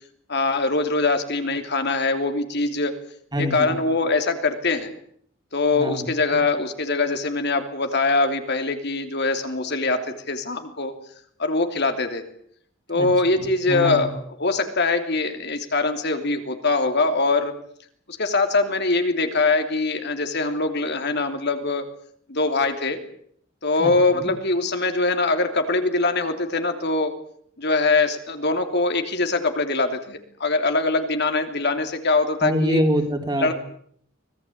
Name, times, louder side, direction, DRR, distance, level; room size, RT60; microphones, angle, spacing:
voice 1, 0.3-2.9 3.4-4.9 5.5-10.9 11.4-12.2 12.9-14.1 14.4-17.5 18.2-21.8 22.3-23.0 23.6-27.1 27.6-32.8 33.4-33.5, left 3 dB, 55° left, 6 dB, 3.1 m, -23 dB
voice 2, 3.3-3.8 5.7-6.4 12.9-14.1 23.8-24.3 32.4-33.5, equal, 20° right, 5 dB, 3.7 m, -26 dB
25.0 x 19.5 x 8.7 m, 0.64 s
head